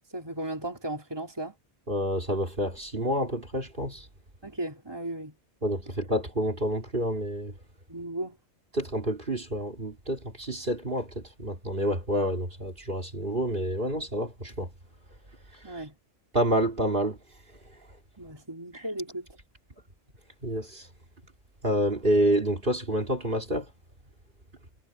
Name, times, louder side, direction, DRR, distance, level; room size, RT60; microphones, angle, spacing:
voice 1, 0.1-1.6 4.4-5.3 7.9-8.4 15.6-15.9 18.2-19.3, right 1 dB, 20° right, 3.1 m, -35 dB
voice 2, 1.9-4.0 5.6-7.5 8.8-14.7 16.3-17.2 20.4-20.8 21.6-23.6, equal, 50° right, 3.5 m, -28 dB
omnidirectional pair, 1.2 m